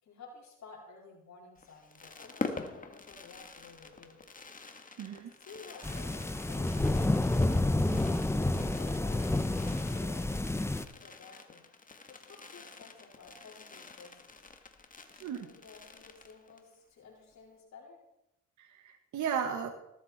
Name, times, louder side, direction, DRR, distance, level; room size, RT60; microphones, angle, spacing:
voice 1, 0.0-4.2 5.4-7.9 8.3-9.2 9.6-11.6 12.1-14.5 15.1-18.0, left 4 dB, 65° left, -2 dB, 4.5 m, -53 dB
Fireworks, 1.6-16.7 17.0-17.1 17.3-17.6, left 4 dB, 25° left, 1.8 m, -46 dB
voice 2, 5.0-5.3 15.2-15.5 18.6-19.7, right 7 dB, 75° right, 5 dB, 1.8 m, -35 dB
sound 1, 5.8-10.8, left 2 dB, 10° left, 0.8 m, -29 dB
19.5 x 13.0 x 4.4 m, 0.85 s
cardioid pair, 90°, 30 cm